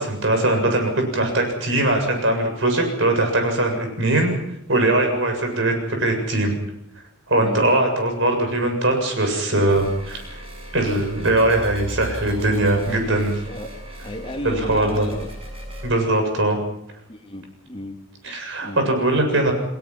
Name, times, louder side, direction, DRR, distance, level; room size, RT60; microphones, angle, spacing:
voice 1, 0.0-4.3 4.7-6.5 7.3-10.4 10.7-13.3 14.4-15.1 15.8-16.6 18.2-19.5, right 2 dB, 65° right, 4 dB, 7.3 m, -21 dB
voice 2, 7.3-7.7 13.1-13.7 14.0-15.3 17.1-18.0 18.6-18.8, left 1 dB, 30° left, 3 dB, 2.8 m, -33 dB
sound 1, 9.7-15.9, right 1 dB, 30° right, 6.8 m, -36 dB
29.5 x 19.5 x 6.1 m, 0.79 s
head